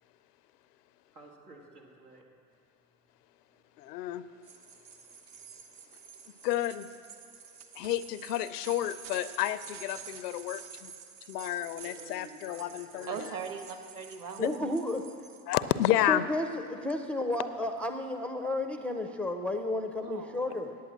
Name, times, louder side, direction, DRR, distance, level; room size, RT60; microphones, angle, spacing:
voice 1, 1.1-2.3 3.5-3.6 10.2-10.4 11.7-13.3, right 3 dB, 90° right, -1 dB, 2.2 m, -52 dB
voice 2, 3.8-4.2 6.4-6.9 7.8-10.9 11.3-13.3 14.4-14.5 15.5-16.2, left 13 dB, 90° left, 14 dB, 0.6 m, -31 dB
sound 1, 4.4-15.6, right 7 dB, 65° right, 1.1 m, -49 dB
voice 3, 13.1-14.7 20.0-20.6, right 6 dB, 45° right, 6 dB, 1.3 m, -40 dB
voice 4, 14.4-15.0 15.9-20.8, left 1 dB, 5° left, 6 dB, 0.4 m, -32 dB
9.4 x 8.5 x 7.4 m, 2.3 s
hypercardioid pair, 90°, 46 cm